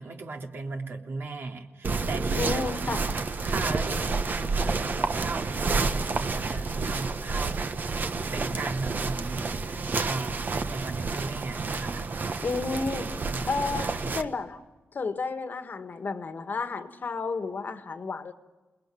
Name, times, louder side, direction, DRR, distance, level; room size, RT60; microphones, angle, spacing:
voice 1, 0.0-2.6 3.4-7.6 8.3-12.1 13.0-13.5 13.8-14.1, right 3 dB, 65° right, 3.1 m, -37 dB
sound 1, 1.8-14.2, right 4 dB, 45° right, 1.5 m, -29 dB
voice 2, 2.3-3.0 12.4-13.2 13.5-14.6 14.9-18.3, left 4 dB, 45° left, 1.7 m, -32 dB
28.5 x 21.0 x 9.2 m
wide cardioid pair, 115°, 4 cm